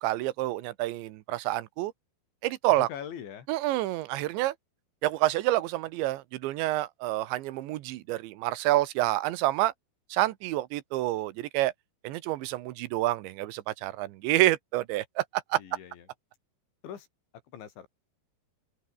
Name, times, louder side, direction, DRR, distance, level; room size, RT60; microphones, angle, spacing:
voice 1, 0.0-1.9 2.4-2.9 3.5-4.5 5.0-9.7 10.1-11.7 12.0-15.6, right 16 dB, 85° right, 3.4 m, -28 dB
voice 2, 2.7-3.5 15.5-16.1 16.8-17.1 17.5-17.9, left 9 dB, 90° left, 5.6 m, -42 dB
omnidirectional pair, 5.1 m